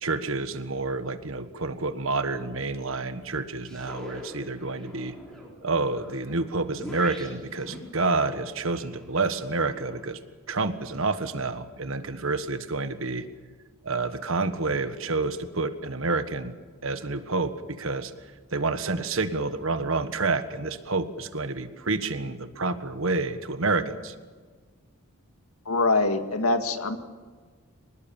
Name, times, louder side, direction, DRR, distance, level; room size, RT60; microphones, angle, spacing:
voice 1, 0.0-5.1 5.6-10.2 10.5-13.2 13.8-16.5 16.8-18.1 18.5-24.1, right 3 dB, 65° right, 10 dB, 1.5 m, -29 dB
sound 1, 3.7-10.0, equal, 5° left, 5.1 m, -44 dB
voice 2, 25.7-27.0, left 3 dB, 85° left, 8 dB, 2.0 m, -24 dB
25.0 x 19.5 x 7.2 m, 1.5 s
head